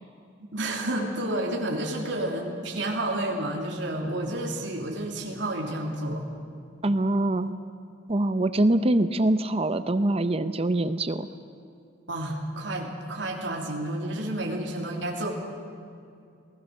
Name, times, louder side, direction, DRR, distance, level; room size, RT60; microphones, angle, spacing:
voice 1, 0.4-6.2 12.1-15.3, right 1 dB, 75° right, -1 dB, 3.3 m, -30 dB
voice 2, 6.8-7.5 8.1-11.3, right 1 dB, 30° right, 11 dB, 0.7 m, -24 dB
28.0 x 19.5 x 6.6 m, 2.4 s
head